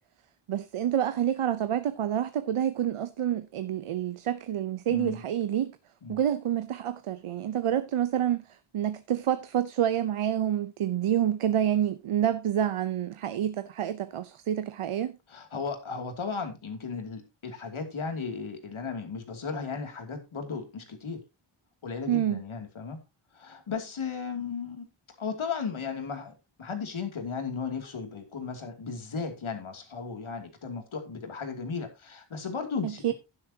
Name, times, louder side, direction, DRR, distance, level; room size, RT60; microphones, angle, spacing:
voice 1, 0.5-5.7 6.1-15.1 22.1-22.4 32.8-33.1, right 10 dB, 85° right, 0.8 m, -28 dB
voice 2, 4.9-5.2 6.0-6.2 15.3-21.2 21.8-23.0 23.3-24.9 25.2-33.1, left 5 dB, 75° left, 2.8 m, -35 dB
11.5 x 10.5 x 2.8 m
wide cardioid pair, 105°, 49 cm